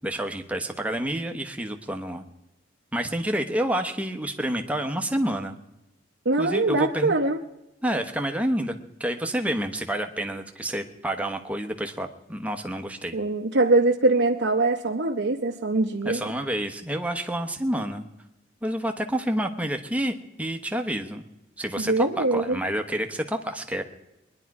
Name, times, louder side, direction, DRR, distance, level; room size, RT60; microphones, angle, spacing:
voice 1, 0.0-2.2 2.9-5.6 6.4-7.1 7.8-13.2 16.0-18.0 18.6-21.2 21.6-23.8, right 1 dB, 5° right, 5 dB, 1.0 m, -29 dB
voice 2, 6.2-7.4 13.1-16.2 21.8-22.6, right 2 dB, 75° right, 1 dB, 0.9 m, -23 dB
22.0 x 11.0 x 4.8 m, 0.94 s
head